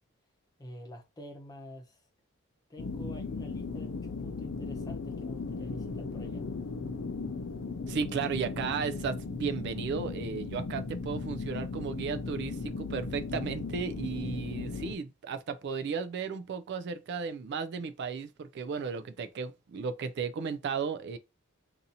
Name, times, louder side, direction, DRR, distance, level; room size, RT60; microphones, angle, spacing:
voice 1, 0.6-2.0 2.7-6.4, left 1 dB, 15° left, 0.8 m, -48 dB
sound 1, 2.8-14.9, left 3 dB, 60° left, 0.5 m, -37 dB
voice 2, 7.9-21.2, right 5 dB, 50° right, 0.3 m, -34 dB
2.7 x 2.6 x 4.0 m
head